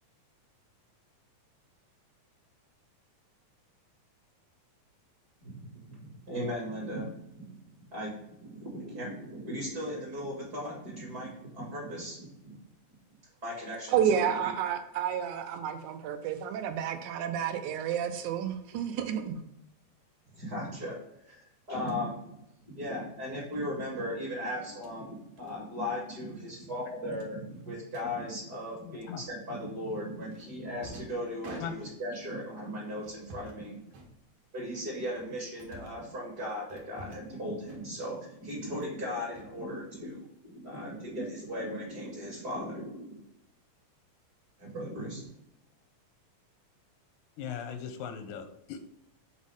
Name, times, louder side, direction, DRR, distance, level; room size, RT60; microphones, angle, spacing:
voice 1, 5.4-12.6 13.4-14.5 20.3-22.2 22.6-33.8 34.5-43.2 44.6-45.3, equal, 35° right, -4 dB, 2.0 m, -37 dB
voice 2, 13.9-19.4, right 8 dB, 85° right, 8 dB, 2.0 m, -30 dB
sound 1, 21.8-22.0 23.5-23.7 24.6-25.0 25.4-25.6 25.9-26.1 26.4-26.5 27.1-28.1 29.2-29.6 30.3-32.2 33.0-33.6 33.9-34.6 35.1-36.1 36.7-37.4 37.6-38.1 38.5-39.0 39.3-40.1, right 1 dB, 65° right, 2.1 m, -51 dB
voice 3, 28.8-29.2 31.6-31.7 47.4-49.0, left 7 dB, 90° left, 7 dB, 2.2 m, -39 dB
7.1 x 4.2 x 3.5 m, 0.83 s
omnidirectional pair, 3.5 m